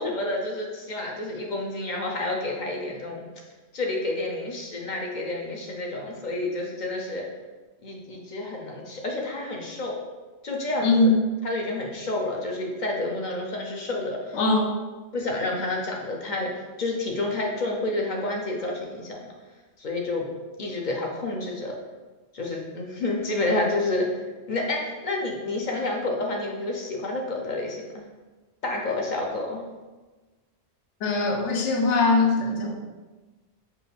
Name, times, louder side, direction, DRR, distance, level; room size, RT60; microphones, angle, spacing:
voice 1, 0.0-3.2 3.7-7.2 7.8-10.0 10.4-11.1 11.4-14.4 15.1-16.5 16.8-19.3 19.8-20.3 20.6-21.7 22.3-24.2 24.5-28.0 28.6-29.7, left 2 dB, 55° left, 0 dB, 0.6 m, -29 dB
voice 2, 10.8-11.2 14.3-14.7 31.0-32.8, left 3 dB, 85° left, 1 dB, 1.0 m, -21 dB
4.5 x 2.4 x 3.3 m, 1.2 s
omnidirectional pair, 1.2 m